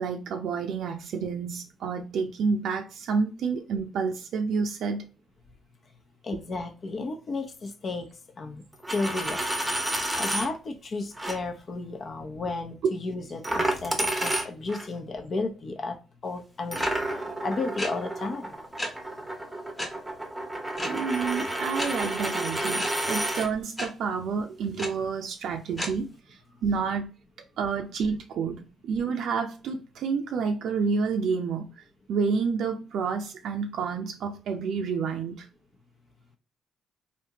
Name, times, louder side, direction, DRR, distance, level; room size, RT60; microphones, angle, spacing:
voice 1, 0.0-5.0 20.8-27.1 27.6-31.8 32.1-35.5, right 5 dB, 75° right, 0.5 m, -29 dB
voice 2, 6.2-8.1 8.4-8.6 8.9-9.4 10.2-16.0 16.2-16.8 17.4-18.6, left 3 dB, 45° left, 0.8 m, -33 dB
Coin (dropping), 8.7-10.5 11.2-11.4 13.4-14.9 16.7-23.5, right 1 dB, 10° right, 0.9 m, -30 dB
sound 1, 16.8-16.9 17.8-17.9 18.8-18.9 19.8-19.9 20.8-20.9 21.8-21.9 22.8-22.9 23.8-23.9 24.8-24.9 25.8-25.9, left 1 dB, 20° left, 1.1 m, -31 dB
3.4 x 2.7 x 2.8 m
cardioid pair, 90°, 0 cm